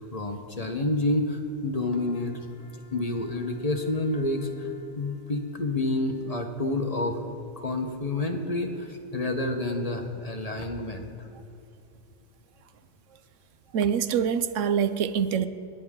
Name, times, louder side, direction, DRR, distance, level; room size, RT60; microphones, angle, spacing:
voice 1, 0.1-7.2 7.6-11.1, left 2 dB, 30° left, 4 dB, 1.1 m, -29 dB
voice 2, 13.7-15.5, right 7 dB, 80° right, 12 dB, 1.0 m, -25 dB
29.5 x 10.5 x 3.7 m, 2.7 s
omnidirectional pair, 1.3 m